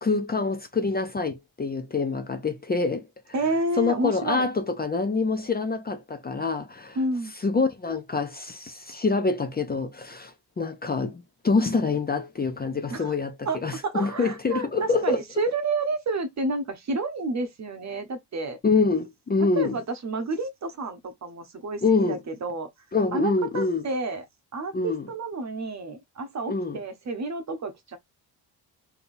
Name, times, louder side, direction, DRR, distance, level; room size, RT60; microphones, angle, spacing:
voice 1, 0.0-3.1 3.8-7.0 7.4-15.2 18.6-19.8 21.8-22.2 22.9-23.8 24.7-25.1 26.5-26.8, left 4 dB, 25° left, 0.5 m, -26 dB
voice 2, 3.3-4.5 7.0-7.3 12.9-13.1 13.4-18.6 19.6-22.7 23.1-24.2 24.5-28.0, right 2 dB, 45° right, 1.0 m, -30 dB
3.5 x 2.9 x 2.6 m
cardioid pair, 100°, 39 cm